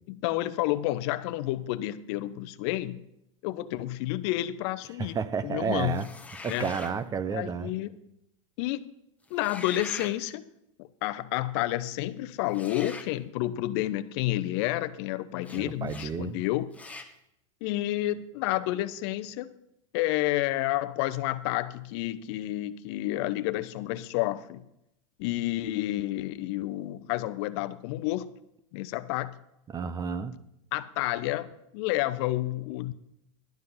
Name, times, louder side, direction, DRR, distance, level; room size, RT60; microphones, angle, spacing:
voice 1, 0.1-3.0 3.4-5.2 5.4-6.0 6.5-6.7 7.3-8.0 8.6-8.9 9.3-10.4 10.8-16.7 17.6-19.5 19.9-24.6 25.2-28.3 28.7-29.3 30.7-32.9, left 15 dB, 55° left, 14 dB, 0.7 m, -30 dB
voice 2, 5.0-6.1 6.4-7.7 15.5-16.4 29.7-30.3, right 6 dB, 20° right, 14 dB, 0.7 m, -31 dB
sound 1, 5.9-7.0 9.3-10.2 12.5-13.1 15.4-15.6 15.9-16.1 16.7-17.1, left 3 dB, 10° left, 1.2 m, -43 dB
12.0 x 7.6 x 5.5 m, 0.81 s
hypercardioid pair, 115°, 16 cm